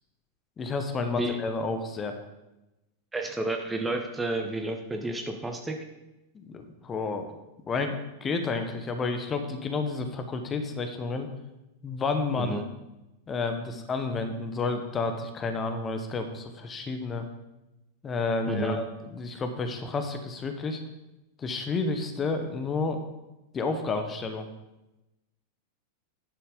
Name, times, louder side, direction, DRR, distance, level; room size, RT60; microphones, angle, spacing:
voice 1, 0.6-2.1 6.3-7.2 7.7-11.3 11.8-12.6 13.3-17.2 18.0-18.8 19.1-20.8 21.4-23.0 23.5-24.5, left 3 dB, 20° left, 6 dB, 1.0 m, -30 dB
voice 2, 3.1-5.8 12.4-12.6 18.4-18.8, right 2 dB, 10° right, 4 dB, 0.8 m, -31 dB
10.5 x 4.6 x 5.2 m, 0.98 s
figure-of-eight pair, 90°, 0 cm